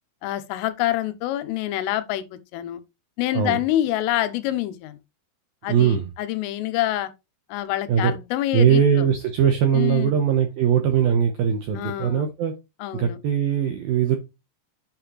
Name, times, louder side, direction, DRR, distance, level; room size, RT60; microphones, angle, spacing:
voice 1, 0.2-2.8 3.2-5.0 5.6-7.1 7.5-9.1 9.8-10.2 11.8-12.2 12.8-13.2, left 14 dB, 90° left, 3.6 m, -26 dB
voice 2, 5.7-6.1 7.9-8.1 8.5-12.5 12.9-14.2, right 8 dB, 80° right, 2.1 m, -20 dB
8.8 x 7.0 x 3.2 m
omnidirectional pair, 5.7 m